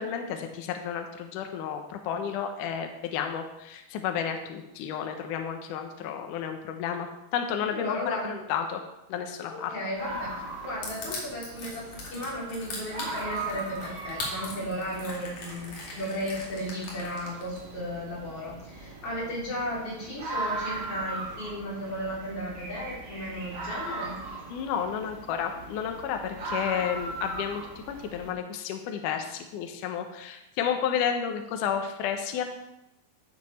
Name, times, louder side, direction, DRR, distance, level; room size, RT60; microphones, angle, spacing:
voice 1, 0.0-8.8 9.1-9.7 24.5-27.6 27.9-32.4, left 8 dB, 75° left, 5 dB, 2.0 m, -31 dB
voice 2, 7.7-8.3 9.5-10.3 10.6-24.2, equal, 40° left, -5 dB, 4.1 m, -35 dB
Fox scream in the forest, 9.9-28.3, right 2 dB, 85° right, 4.9 m, -39 dB
Crushing, 10.8-17.6, left 3 dB, 55° left, 3.7 m, -39 dB
12.5 x 7.6 x 4.3 m, 0.91 s
omnidirectional pair, 4.7 m